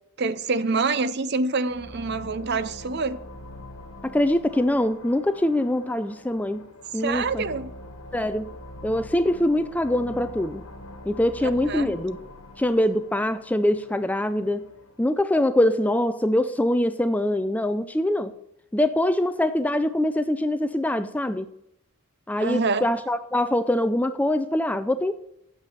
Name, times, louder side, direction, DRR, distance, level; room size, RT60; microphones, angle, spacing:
voice 1, 0.2-3.2 6.9-7.7 11.4-12.0 22.4-22.9, right 4 dB, 50° right, 0.6 m, -26 dB
sound 1, 1.7-15.0, left 1 dB, 80° left, 1.5 m, -43 dB
voice 2, 4.0-6.7 6.9-7.5 8.1-8.5 8.8-10.6 11.1-12.2 12.6-14.7 15.0-18.3 18.7-21.5 22.3-25.1, left 1 dB, 5° left, 0.4 m, -23 dB
9.1 x 6.8 x 7.1 m
head